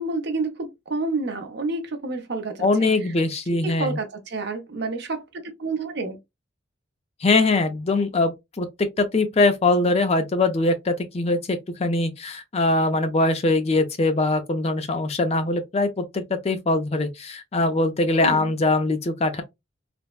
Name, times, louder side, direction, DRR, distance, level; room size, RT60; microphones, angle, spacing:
voice 1, 0.0-2.7 3.0-3.1 3.6-6.2 18.2-18.5, right 3 dB, 60° right, 0.7 m, -29 dB
voice 2, 2.6-4.0 7.2-8.7 9.0-19.4, left 2 dB, 30° left, 0.4 m, -22 dB
3.3 x 2.0 x 2.3 m
head